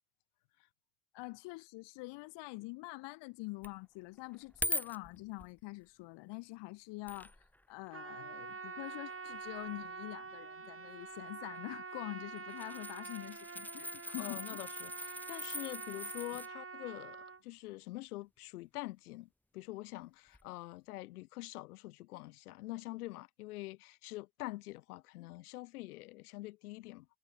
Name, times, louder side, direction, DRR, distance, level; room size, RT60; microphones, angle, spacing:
voice 1, 1.1-7.3 7.7-14.7, left 24 dB, 75° left, 1.1 m, -45 dB
sound 1, 3.6-3.7 4.2-5.6 6.3-6.4 7.1-7.6 7.9-8.0 8.8-9.8 11.0-11.3 11.5-11.6 12.2-16.5 20.3-20.4, left 1 dB, 5° left, 2.1 m, -42 dB
Trumpet, 7.9-17.4, right 4 dB, 30° right, 4.0 m, -46 dB
voice 2, 14.2-27.1, left 19 dB, 90° left, 0.7 m, -45 dB
hypercardioid pair, 45°, 43 cm